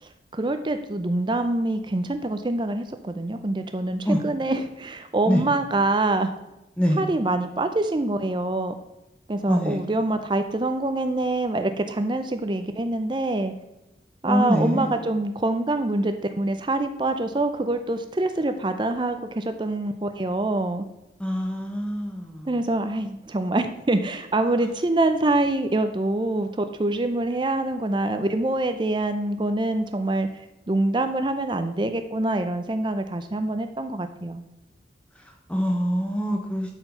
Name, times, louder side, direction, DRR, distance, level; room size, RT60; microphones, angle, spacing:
voice 1, 0.0-6.3 7.0-8.7 9.3-13.5 14.2-20.8 22.5-30.3 30.7-34.4, right 2 dB, 25° right, 8 dB, 0.5 m, -25 dB
voice 2, 9.5-9.9 14.2-15.0 21.2-22.5 35.2-36.7, equal, 5° left, 1 dB, 0.8 m, -25 dB
11.5 x 4.5 x 5.6 m, 0.94 s
head